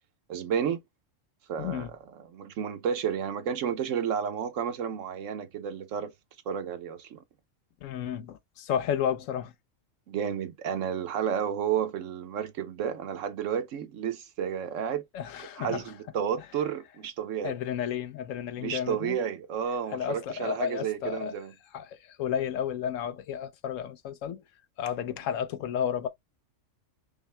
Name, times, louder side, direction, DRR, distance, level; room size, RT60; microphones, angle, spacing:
voice 1, 0.3-0.8 1.5-1.9 2.3-6.1 6.5-7.2 10.1-15.0 15.6-17.6 18.6-21.5, right 8 dB, 80° right, 1.1 m, -31 dB
voice 2, 1.6-1.9 7.8-9.5 15.1-15.9 16.4-16.5 17.4-19.2 19.9-21.3 21.7-24.4 24.8-26.1, left 9 dB, 85° left, 1.0 m, -32 dB
5.5 x 2.0 x 3.2 m
omnidirectional pair, 1.3 m